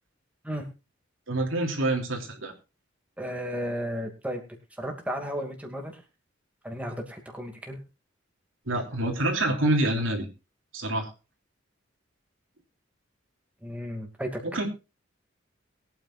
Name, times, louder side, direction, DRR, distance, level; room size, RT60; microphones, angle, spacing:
voice 1, 1.3-2.5 8.7-10.3 10.7-11.1 14.4-14.7, right 1 dB, 85° right, 2 dB, 3.1 m, -26 dB
voice 2, 3.2-4.4 4.8-6.0 6.6-7.8 13.6-14.4, equal, 5° right, 2 dB, 2.5 m, -34 dB
22.0 x 9.2 x 2.6 m, 0.29 s
head